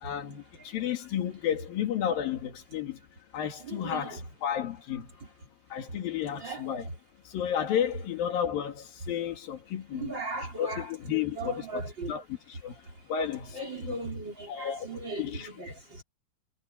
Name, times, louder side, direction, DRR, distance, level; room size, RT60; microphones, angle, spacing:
voice 1, 0.0-3.0 3.3-5.1 5.7-6.9 7.3-10.1 10.6-12.3 12.6-12.8 13.1-13.6 13.8-14.0 14.5-14.9 15.2-15.5, left 9 dB, 75° left, 3.8 m, -32 dB
voice 2, 3.6-4.2 6.4-6.7 9.9-10.9 11.4-12.1 13.5-16.0, right 2 dB, 30° right, 5.0 m, -37 dB
omnidirectional pair, 4.1 m